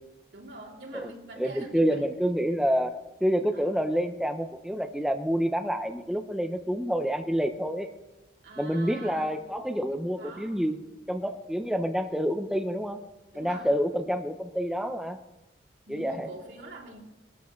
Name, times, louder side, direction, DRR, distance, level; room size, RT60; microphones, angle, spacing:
voice 1, 0.3-2.1 2.5-2.6 3.5-3.7 8.4-9.4 10.2-10.6 13.3-13.8 15.9-17.0, right 1 dB, 70° right, -2 dB, 3.2 m, -44 dB
voice 2, 1.4-7.9 8.6-10.8 11.1-13.0 13.4-15.2 15.9-16.3, equal, 5° right, 5 dB, 0.7 m, -28 dB
21.5 x 12.5 x 3.2 m, 0.98 s
head